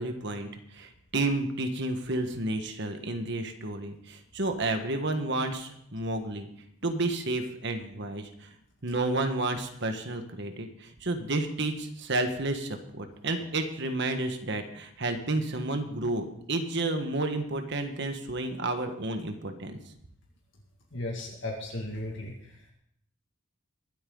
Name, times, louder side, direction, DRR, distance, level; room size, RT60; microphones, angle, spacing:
voice 1, 0.0-6.5 6.8-8.5 8.8-19.8, right 2 dB, 55° right, 6 dB, 1.5 m, -31 dB
voice 2, 20.9-22.7, left 1 dB, 60° left, -1 dB, 2.2 m, -36 dB
22.5 x 8.5 x 4.0 m, 0.72 s
head